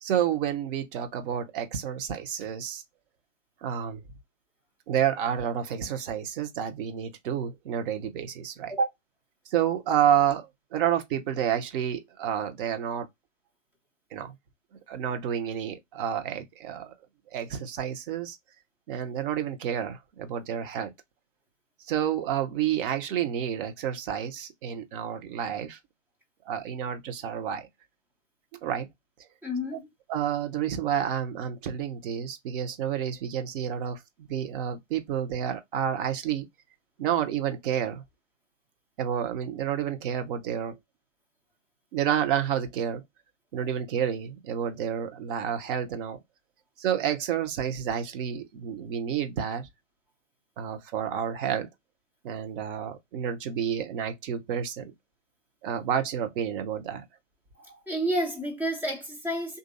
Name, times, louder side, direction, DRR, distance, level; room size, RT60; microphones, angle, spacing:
voice 1, 0.0-2.8 3.6-4.0 4.9-8.7 9.5-13.1 14.1-14.3 14.9-16.9 17.3-18.4 18.9-20.9 21.9-25.8 26.5-27.7 28.6-28.9 30.1-34.0 34.3-36.5 37.0-38.0 39.0-40.7 41.9-43.0 43.5-46.2 46.8-49.7 50.6-51.7 52.2-54.9 55.6-57.0, right 9 dB, 45° right, 0.9 m, -29 dB
voice 2, 29.4-29.9 57.6-59.6, right 1 dB, 5° right, 0.4 m, -30 dB
3.1 x 2.6 x 2.5 m
hypercardioid pair, 115°, 38 cm